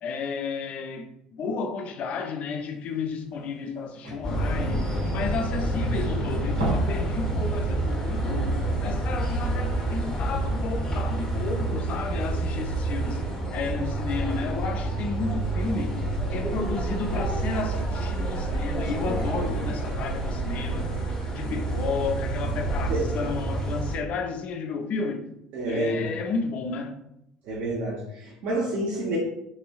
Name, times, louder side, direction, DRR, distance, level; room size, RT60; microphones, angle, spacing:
voice 1, 0.0-8.4 8.8-13.2 13.5-16.0 16.3-20.9 21.3-25.3 25.7-27.0, left 4 dB, 45° left, 0.4 m, -32 dB
sound 1, 3.0-3.1 3.3-3.4 3.6-6.0 6.3-7.1 7.4-7.6 8.0-8.1, equal, 85° right, 1.0 m, -32 dB
sound 2, 4.2-24.0, right 2 dB, 25° left, 0.8 m, -28 dB
voice 2, 18.7-19.2 19.6-19.7 22.8-23.0 25.5-26.2 27.4-29.2, right 1 dB, 55° right, 0.6 m, -29 dB
3.1 x 2.5 x 2.2 m
figure-of-eight pair, 60°, 3 cm